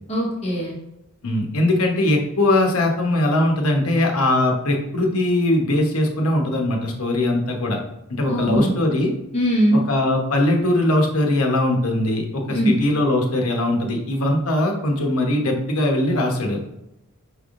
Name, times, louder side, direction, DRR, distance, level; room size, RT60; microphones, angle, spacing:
voice 1, 0.1-0.7 8.3-8.7 9.3-9.8 12.5-12.7, equal, 30° left, -3 dB, 1.1 m, -20 dB
voice 2, 1.2-7.8 8.1-9.1 9.7-16.8, left 1 dB, 70° left, 1 dB, 0.9 m, -20 dB
5.8 x 3.4 x 2.5 m, 0.85 s
head